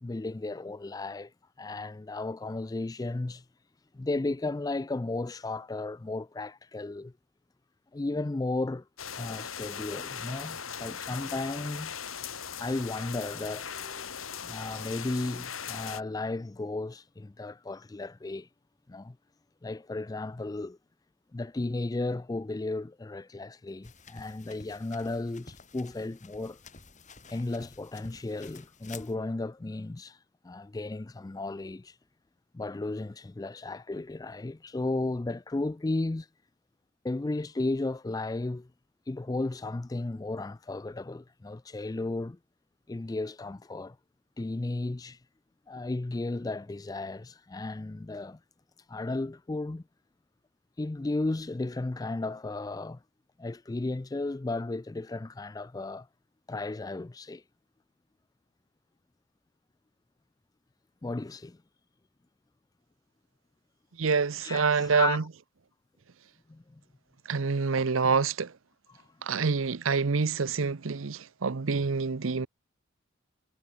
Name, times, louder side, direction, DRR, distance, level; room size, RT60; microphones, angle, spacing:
voice 1, 0.0-1.3 1.6-3.4 3.9-7.1 7.9-8.9 9.1-12.0 12.6-14.2 14.4-18.5 18.9-19.2 19.6-20.8 21.3-26.6 27.3-30.2 30.4-31.9 32.5-36.3 37.0-38.7 39.1-42.4 42.9-44.0 44.4-45.2 45.7-48.4 48.9-49.8 50.8-53.0 53.4-56.1 56.5-57.4 61.0-61.6 64.4-65.2 66.5-66.8 68.9-69.0, left 2 dB, 20° left, 0.3 m, -34 dB
sound 1, 9.0-16.0, left 7 dB, 85° left, 2.9 m, -39 dB
sound 2, 23.8-29.1, left 4 dB, 35° left, 5.1 m, -51 dB
voice 2, 64.0-65.2 67.3-68.5 69.2-72.5, right 5 dB, 75° right, 0.7 m, -27 dB
head